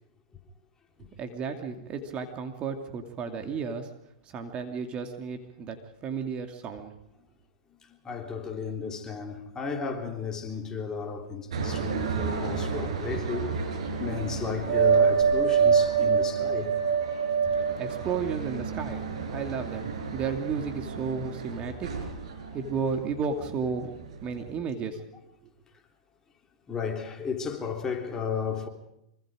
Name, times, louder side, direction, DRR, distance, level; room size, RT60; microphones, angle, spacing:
voice 1, 1.2-3.9 4.2-6.9 17.8-21.9 22.5-23.9 24.2-25.0, right 5 dB, 30° right, 2.6 m, -33 dB
voice 2, 8.0-13.7 14.0-16.8 26.7-28.7, left 6 dB, 20° left, 3.6 m, -34 dB
sound 1, 11.5-23.7 24.1-24.5, right 6 dB, 75° right, 6.3 m, -27 dB
25.5 x 24.5 x 5.1 m
hypercardioid pair, 120°, 4 cm